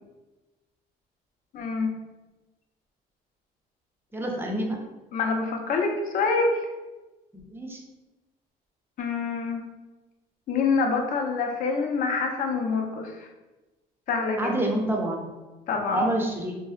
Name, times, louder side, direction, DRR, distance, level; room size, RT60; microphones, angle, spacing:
voice 1, 1.5-1.9 5.1-6.5 9.0-9.6 10.5-13.3 14.1-14.6 15.7-16.0, left 4 dB, 50° left, 3 dB, 0.4 m, -26 dB
voice 2, 4.1-4.8 7.5-7.8 14.4-15.3 15.9-16.5, right 1 dB, 15° right, 0 dB, 0.4 m, -27 dB
2.6 x 2.0 x 2.3 m, 1.1 s
cardioid pair, 110°, 17 cm